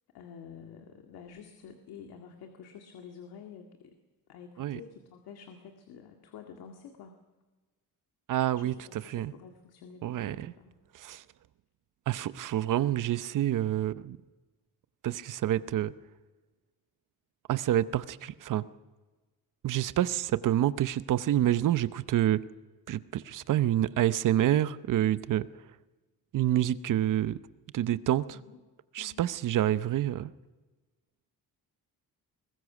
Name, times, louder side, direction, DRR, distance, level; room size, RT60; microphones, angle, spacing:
voice 1, 0.1-4.0 4.3-7.2 8.5-10.8 28.3-28.6 29.0-29.3, left 7 dB, 85° left, 4 dB, 2.0 m, -49 dB
voice 2, 8.3-8.7 9.1-9.3 10.0-10.5 11.0-11.2 12.1-14.2 15.0-15.9 17.5-18.6 19.6-22.4 22.9-25.5 26.3-27.4 27.7-28.2 28.9-30.3, right 12 dB, 55° right, 14 dB, 0.8 m, -27 dB
22.5 x 19.5 x 6.1 m, 1.2 s
cardioid pair, 155°, 37 cm